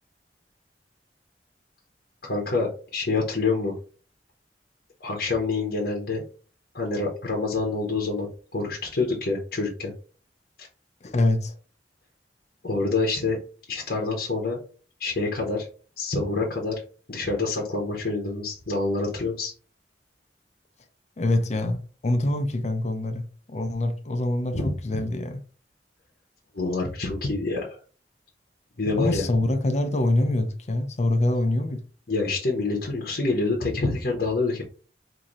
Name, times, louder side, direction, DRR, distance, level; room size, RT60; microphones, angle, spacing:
voice 1, 2.2-3.7 5.0-6.2 6.7-9.9 10.6-10.7 12.6-13.4 13.7-14.6 15.0-15.7 16.0-16.7 17.1-19.5 24.5-24.7 26.5-27.8 28.8-29.3 32.1-34.6, left 3 dB, 60° left, 1.0 m, -27 dB
voice 2, 11.0-11.5 21.2-21.8 22.0-25.4 29.0-31.8, left 1 dB, 40° left, 0.6 m, -25 dB
4.0 x 2.8 x 3.0 m
head